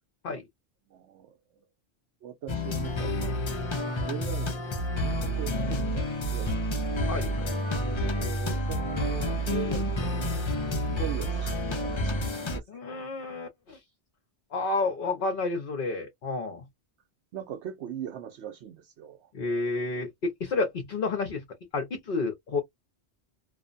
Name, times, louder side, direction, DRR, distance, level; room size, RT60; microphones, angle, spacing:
voice 1, 0.9-1.7 2.2-3.7 4.0-6.7 8.0-10.3 10.9-13.0 17.3-19.3, right 9 dB, 85° right, 0.9 m, -40 dB
sound 1, 2.5-12.6, equal, 40° left, 0.4 m, -29 dB
voice 2, 7.1-7.5 12.7-13.8 14.5-16.6 19.3-21.4 21.7-22.6, left 3 dB, 55° left, 0.9 m, -30 dB
2.5 x 2.1 x 2.5 m
omnidirectional pair, 1.1 m